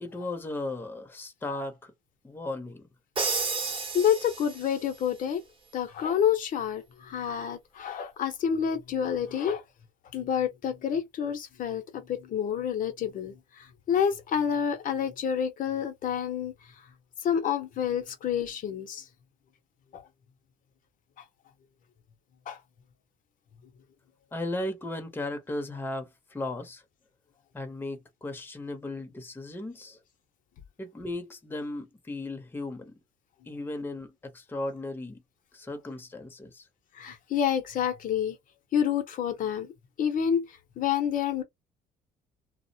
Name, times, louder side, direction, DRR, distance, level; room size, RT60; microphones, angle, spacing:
voice 1, 0.0-1.9 2.2-2.8 24.3-26.8 27.5-30.0 30.8-33.0 33.5-35.2 35.5-36.7, left 2 dB, 10° left, 0.7 m, -36 dB
Crash cymbal, 3.2-4.8, right 4 dB, 30° right, 0.8 m, -31 dB
voice 2, 3.6-5.4 5.7-9.6 10.1-16.5 17.2-19.1 19.9-20.0 22.5-22.6 36.9-38.4 38.7-39.7 40.0-41.4, left 8 dB, 55° left, 0.7 m, -28 dB
2.3 x 2.0 x 2.7 m
cardioid pair, 110°, 17 cm